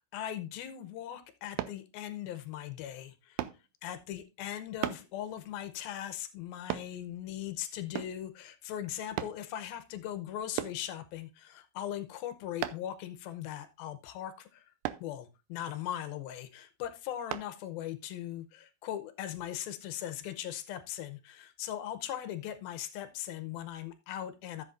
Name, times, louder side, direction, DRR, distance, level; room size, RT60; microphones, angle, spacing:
voice 1, 0.0-3.4 3.8-14.6 15.0-24.6, left 11 dB, 80° left, 9 dB, 2.5 m, -39 dB
sound 1, 1.6-1.8 3.4-3.6 4.8-5.1 6.7-6.9 7.9-8.2 9.2-9.4 10.6-10.8 12.6-12.9 14.8-15.1 17.3-17.5 18.1-18.2, right 14 dB, 80° right, 2.2 m, -35 dB
13.5 x 7.6 x 2.6 m, 0.27 s
omnidirectional pair, 4.5 m